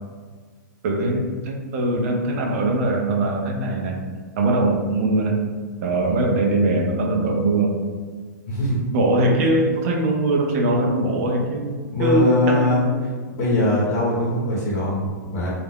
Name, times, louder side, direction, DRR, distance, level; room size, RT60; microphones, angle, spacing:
voice 1, 0.8-4.0 4.4-5.4 5.8-7.8 8.9-13.0, right 2 dB, 45° right, 1 dB, 0.5 m, -21 dB
voice 2, 8.5-8.8 11.9-12.9 13.3-15.5, left 2 dB, 50° left, -6 dB, 0.9 m, -21 dB
2.4 x 2.1 x 3.4 m, 1.5 s
hypercardioid pair, 150°, 10 cm